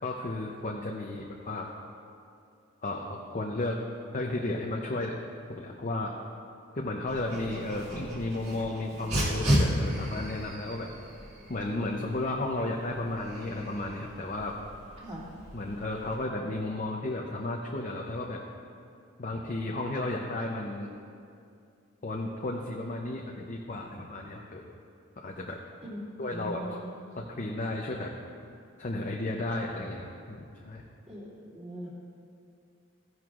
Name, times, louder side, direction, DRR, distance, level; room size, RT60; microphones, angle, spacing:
voice 1, 0.0-1.7 2.8-3.7 4.1-5.1 5.6-6.1 6.8-10.9 11.5-14.6 15.5-18.4 19.2-20.9 22.0-24.7 25.2-25.6 26.2-26.8 27.2-28.1 28.8-30.8, left 2 dB, 35° left, 0 dB, 0.6 m, -33 dB
Dog, 7.1-16.2, equal, 50° right, 2.5 m, -34 dB
voice 2, 26.3-26.9 31.1-31.9, equal, 25° right, -7 dB, 2.5 m, -41 dB
15.5 x 10.5 x 2.5 m, 2.5 s
head